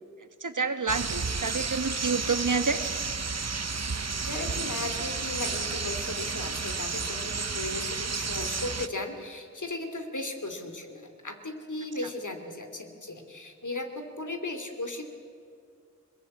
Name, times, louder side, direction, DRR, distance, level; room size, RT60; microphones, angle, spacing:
voice 1, 0.4-2.8, right 4 dB, 75° right, 10 dB, 1.5 m, -28 dB
sound 1, 0.9-8.9, right 4 dB, 55° right, 1.0 m, -32 dB
voice 2, 4.3-15.1, left 2 dB, 70° left, 6 dB, 2.8 m, -36 dB
22.0 x 21.5 x 8.6 m, 2.3 s
wide cardioid pair, 45°, 31 cm